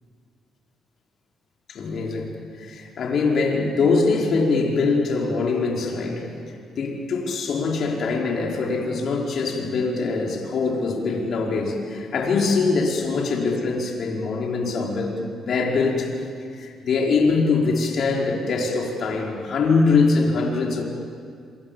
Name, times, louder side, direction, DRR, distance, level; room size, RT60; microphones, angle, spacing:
voice 1, 1.7-2.3 2.6-6.3 6.8-16.1 16.6-20.8, left 4 dB, 60° left, -1 dB, 5.2 m, -23 dB
27.0 x 26.5 x 7.4 m, 2.3 s
cardioid pair, 90°, 0 cm